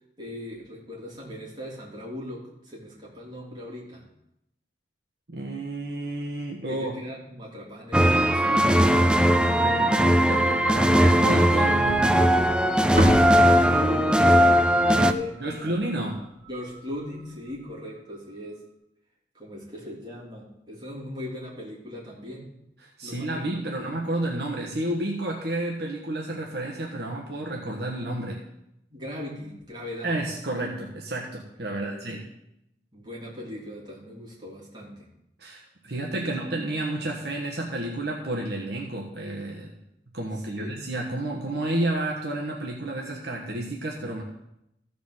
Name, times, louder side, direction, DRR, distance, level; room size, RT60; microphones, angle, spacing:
voice 1, 0.2-4.0 6.7-8.7 13.4-16.0 16.5-18.6 19.3-22.5 23.0-24.0 28.9-30.1 31.7-32.1 32.9-35.1 36.0-36.6 40.3-40.8, left 1 dB, 25° right, -6 dB, 3.5 m, -39 dB
voice 2, 5.3-6.9 9.6-12.2 15.4-16.2 22.8-28.4 30.0-32.2 35.4-39.7 40.1-44.2, right 1 dB, 60° right, -1 dB, 1.4 m, -31 dB
sound 1, 7.9-15.1, equal, 5° right, 0.4 m, -19 dB
sound 2, 8.4-18.4, left 2 dB, 50° left, 1.9 m, -42 dB
sound 3, 11.8-16.1, equal, 40° right, 3.2 m, -31 dB
14.5 x 5.1 x 6.5 m, 0.84 s
head